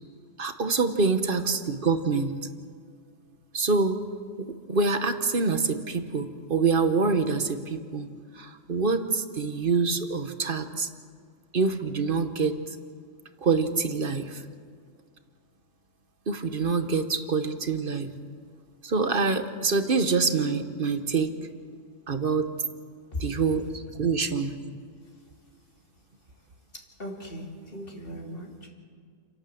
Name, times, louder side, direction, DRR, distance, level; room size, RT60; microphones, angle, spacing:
voice 1, 0.4-2.3 3.5-4.0 4.4-8.1 8.4-10.9 11.5-12.6 13.4-14.4 16.3-18.1 18.8-21.3 22.1-22.5 23.2-24.5, right 4 dB, 45° right, 9 dB, 1.2 m, -26 dB
voice 2, 27.0-28.7, left 1 dB, 45° left, 0 dB, 3.1 m, -37 dB
30.0 x 11.5 x 7.8 m, 2.1 s
omnidirectional pair, 1.3 m